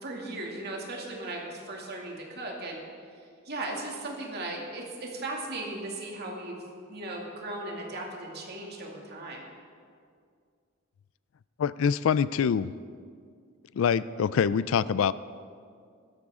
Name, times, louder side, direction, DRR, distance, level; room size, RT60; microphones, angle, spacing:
voice 1, 0.0-2.8 3.1-6.6 6.9-9.4, right 2 dB, 50° right, -1 dB, 2.4 m, -37 dB
voice 2, 11.6-12.7 13.7-15.1, left 7 dB, 70° left, 17 dB, 0.3 m, -25 dB
16.5 x 13.0 x 3.7 m, 2.2 s
head